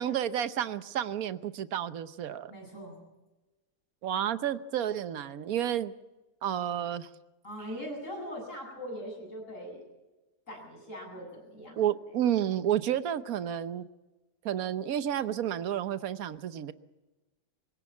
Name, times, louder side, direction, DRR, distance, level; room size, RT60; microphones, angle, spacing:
voice 1, 0.0-2.5 4.0-5.9 6.4-7.1 11.8-13.9 14.4-16.7, right 10 dB, 65° right, 13 dB, 1.3 m, -31 dB
voice 2, 2.5-3.0 7.4-9.8 10.5-11.8 12.1-12.2, equal, 50° left, 1 dB, 8.3 m, -41 dB
24.0 x 17.0 x 7.3 m, 1.1 s
omnidirectional pair, 1.7 m